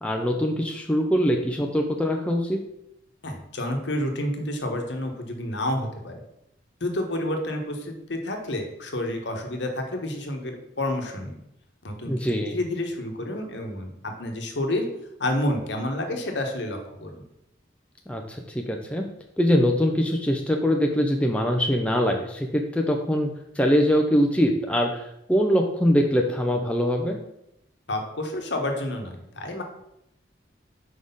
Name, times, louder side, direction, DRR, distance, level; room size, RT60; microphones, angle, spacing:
voice 1, 0.0-2.6 12.1-12.6 18.1-19.1 19.4-23.3 23.6-27.2, equal, 5° left, 2 dB, 0.4 m, -23 dB
voice 2, 3.2-6.2 6.8-11.3 11.8-12.1 12.5-14.9 15.2-17.2 27.9-29.6, left 1 dB, 70° left, 3 dB, 1.1 m, -29 dB
4.8 x 4.2 x 5.3 m, 0.82 s
head